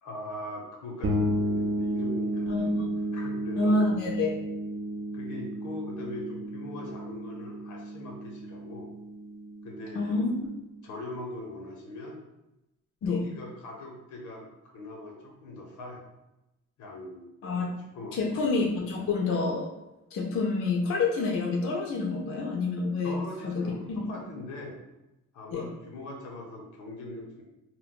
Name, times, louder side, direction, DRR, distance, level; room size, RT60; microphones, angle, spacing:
voice 1, 0.0-2.8 3.1-3.8 5.1-8.9 9.6-10.3 10.8-12.2 13.0-16.1 16.8-17.3 17.5-17.6 17.9-18.4 23.0-24.8 25.3-27.4, left 1 dB, 80° left, 0 dB, 0.8 m, -41 dB
sound 1, 1.0-10.6, right 1 dB, 45° right, 0.6 m, -33 dB
voice 2, 2.5-2.9 3.6-4.3 10.0-10.3 13.0-13.2 17.4-17.7 18.1-19.7 20.1-23.1 23.4-23.6 23.9-24.1 25.5-25.6, left 3 dB, 45° left, 0 dB, 0.5 m, -27 dB
2.2 x 2.1 x 3.7 m, 0.95 s
cardioid pair, 90°, 30 cm